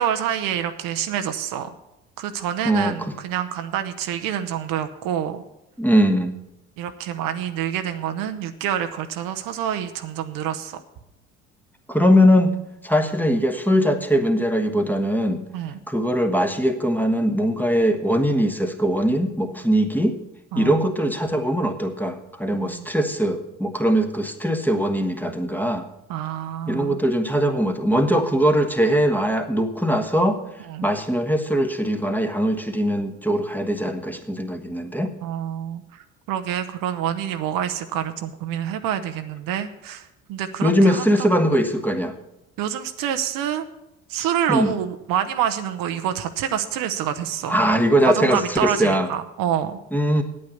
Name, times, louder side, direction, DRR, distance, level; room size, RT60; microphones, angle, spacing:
voice 1, 0.0-1.7 2.2-5.4 6.8-10.8 15.5-15.8 20.5-20.9 22.6-22.9 26.1-27.0 30.7-30.9 35.2-41.5 42.6-43.6 44.1-47.6 48.1-49.8, right 10 dB, 60° right, 8 dB, 0.8 m, -27 dB
voice 2, 2.6-3.0 5.8-6.3 11.9-12.6 12.8-15.4 15.9-20.2 20.6-25.9 26.7-30.4 30.8-35.1 40.6-42.1 44.5-44.7 47.5-49.1 49.9-50.2, equal, 5° left, 5 dB, 1.2 m, -21 dB
8.9 x 8.6 x 6.9 m, 0.89 s
hypercardioid pair, 55°, 38 cm